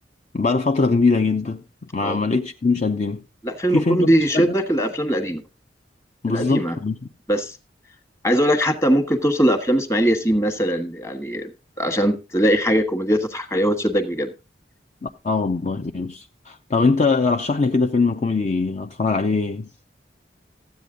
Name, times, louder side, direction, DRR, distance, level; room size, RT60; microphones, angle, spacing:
voice 1, 0.3-1.6 1.9-3.2 3.7-4.6 6.2-7.0 15.0-19.7, left 3 dB, 40° left, 0.6 m, -22 dB
voice 2, 3.4-5.4 6.3-6.8 7.3-7.6 8.2-11.5 11.8-14.3, equal, 15° left, 1.4 m, -21 dB
14.5 x 8.4 x 3.8 m
head